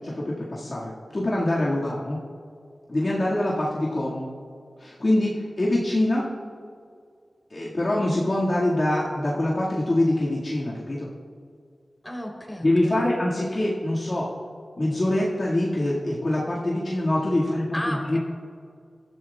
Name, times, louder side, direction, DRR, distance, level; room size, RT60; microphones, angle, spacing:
voice 1, 0.0-2.2 2.9-4.3 4.8-6.3 7.5-11.1 12.6-14.3 14.8-18.2, left 1 dB, 45° left, -6 dB, 2.0 m, -24 dB
voice 2, 12.0-13.1 17.7-18.2, left 1 dB, 10° left, 0 dB, 3.6 m, -33 dB
20.5 x 12.5 x 2.4 m, 2.2 s
cardioid pair, 55°, 0 cm